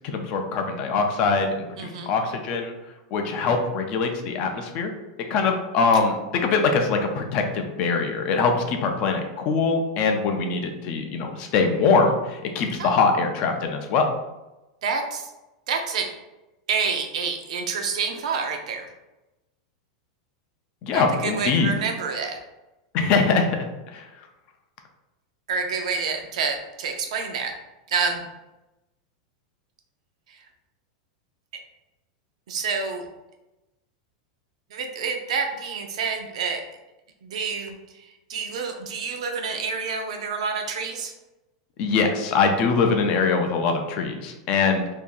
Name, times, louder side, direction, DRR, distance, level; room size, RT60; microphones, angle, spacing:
voice 1, 0.0-1.5 1.8-2.7 3.1-4.9 5.3-14.1 20.8-21.7 22.9-23.6 23.9-24.0 41.8-44.9, left 4 dB, 30° left, 4 dB, 0.4 m, -23 dB
voice 2, 1.8-2.1 12.8-13.0 14.8-15.3 15.7-16.1 16.7-18.9 20.9-22.4 25.5-27.5 27.9-28.2 30.3-30.5 32.5-33.0 34.7-36.6 37.2-41.1, right 5 dB, 75° right, 3 dB, 0.6 m, -28 dB
2.7 x 2.5 x 3.7 m, 1.0 s
supercardioid pair, 170°, 3 cm